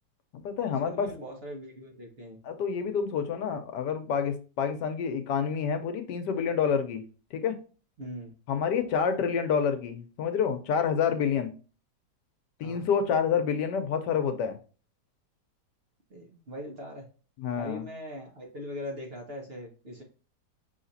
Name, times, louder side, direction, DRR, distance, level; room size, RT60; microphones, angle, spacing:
voice 1, 0.3-1.1 2.4-7.0 7.3-7.6 8.5-11.5 12.6-14.6 17.4-17.8, left 7 dB, 80° left, 8 dB, 1.3 m, -28 dB
voice 2, 0.8-2.4 8.0-8.3 12.6-12.8 16.1-17.1 17.5-20.0, equal, 40° right, 1 dB, 1.1 m, -41 dB
5.7 x 3.5 x 2.6 m, 0.36 s
omnidirectional pair, 1.8 m